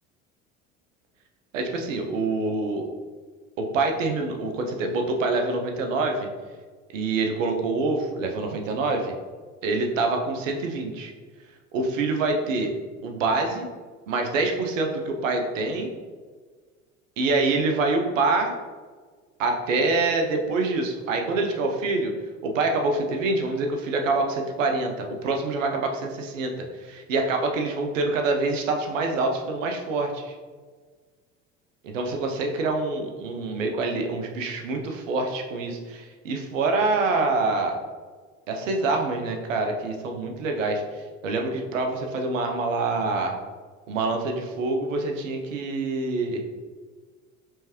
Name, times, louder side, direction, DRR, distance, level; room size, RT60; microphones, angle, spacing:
voice 1, 1.5-2.9 3.6-6.3 6.9-9.1 9.6-11.1 11.7-12.7 13.0-13.7 14.1-15.9 17.2-18.5 19.4-22.1 22.4-26.5 26.8-30.3 31.8-37.8 38.5-43.4 43.9-46.4, right 3 dB, 75° right, 3 dB, 0.7 m, -26 dB
4.5 x 3.3 x 3.0 m, 1.5 s
figure-of-eight pair, 65°, 39 cm